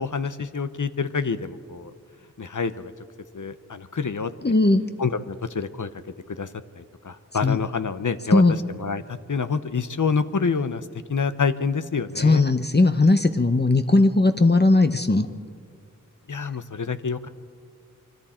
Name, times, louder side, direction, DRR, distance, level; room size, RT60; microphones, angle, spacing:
voice 1, 0.0-1.9 2.4-2.9 3.3-4.3 5.0-5.9 6.3-6.5 6.8-8.4 8.8-12.4 16.3-17.3, left 5 dB, 70° left, 11 dB, 0.8 m, -27 dB
voice 2, 4.4-4.8 7.4-7.6 8.3-8.5 12.2-15.3, left 2 dB, 30° left, 8 dB, 0.8 m, -18 dB
25.0 x 24.0 x 4.4 m, 2.1 s
wide cardioid pair, 50°, 32 cm